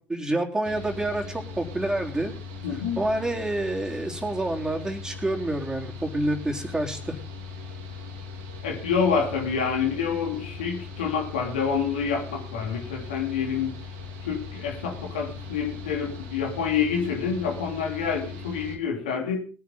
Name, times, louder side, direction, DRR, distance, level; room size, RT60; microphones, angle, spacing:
voice 1, 0.1-2.3 3.0-7.2, right 1 dB, 15° right, 1 dB, 3.3 m, -28 dB
Mechanical fan, 0.6-18.8, left 4 dB, 75° right, 3.1 m, -39 dB
voice 2, 2.6-3.0 8.6-13.7 14.3-19.4, left 6 dB, 80° left, 1 dB, 3.2 m, -27 dB
20.5 x 9.7 x 4.0 m, 0.36 s
hypercardioid pair, 60°, 5 cm